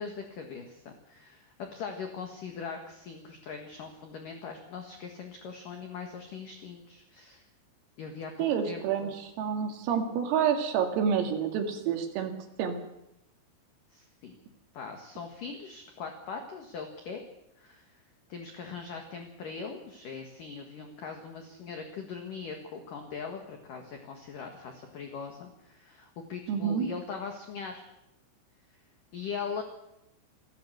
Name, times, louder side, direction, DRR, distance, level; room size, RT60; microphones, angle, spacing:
voice 1, 0.0-7.4 8.0-9.1 13.9-14.4 14.7-17.2 17.6-17.9 18.3-27.8 29.1-29.6, left 5 dB, 55° left, 4 dB, 2.5 m, -41 dB
voice 2, 8.4-12.3 12.6-12.8 26.5-26.9, right 7 dB, 90° right, 4 dB, 4.9 m, -28 dB
27.5 x 12.0 x 8.0 m, 0.86 s
omnidirectional pair, 5.8 m